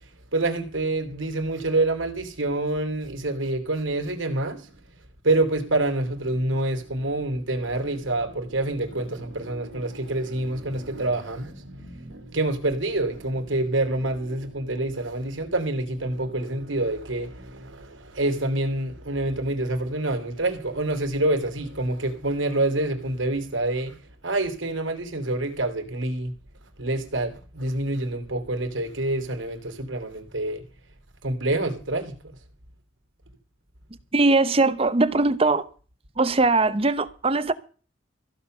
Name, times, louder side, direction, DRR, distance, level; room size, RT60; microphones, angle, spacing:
voice 1, 0.3-4.7 5.2-24.0 24.2-26.3 26.8-30.6 31.2-32.1, right 2 dB, 80° right, 3.3 m, -27 dB
voice 2, 34.1-35.6 36.2-37.5, right 3 dB, 30° right, 0.8 m, -20 dB
15.5 x 7.4 x 6.8 m
head